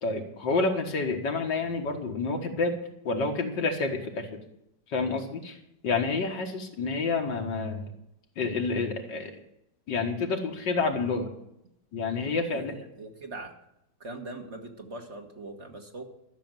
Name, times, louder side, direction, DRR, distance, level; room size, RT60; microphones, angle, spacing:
voice 1, 0.0-2.8 3.0-4.4 4.9-5.6 5.8-7.9 8.4-9.3 9.9-11.3 11.9-12.7, left 3 dB, 75° left, 3 dB, 2.3 m, -29 dB
voice 2, 12.5-13.5 14.0-16.0, right 2 dB, 40° right, 3 dB, 1.8 m, -41 dB
13.0 x 6.9 x 9.1 m, 0.81 s
omnidirectional pair, 1.9 m